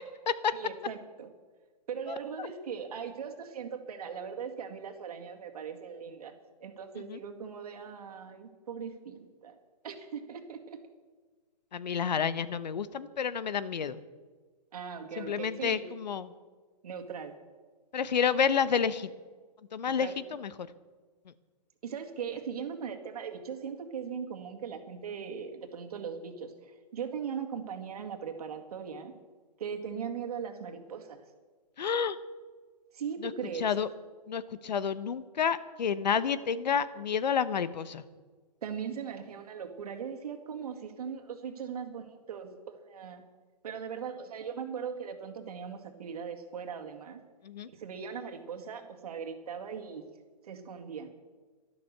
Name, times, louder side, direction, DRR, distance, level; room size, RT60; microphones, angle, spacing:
voice 1, 0.5-1.3 1.9-6.3 6.6-9.5 9.8-10.8 14.7-15.9 16.8-17.3 19.9-20.1 21.8-29.1 29.6-31.2 32.9-33.8 38.6-43.2 43.6-47.2 47.7-50.0 50.4-51.1, right 7 dB, 65° right, 5 dB, 2.0 m, -39 dB
voice 2, 2.1-2.5 7.1-7.2 11.7-14.0 15.2-16.3 17.9-19.1 19.7-20.5 31.8-32.2 33.2-33.3 33.6-33.9 34.3-38.0 47.4-47.7, left 7 dB, 85° left, 16 dB, 1.0 m, -30 dB
12.0 x 12.0 x 6.7 m, 1.4 s
hypercardioid pair, 160°, 21 cm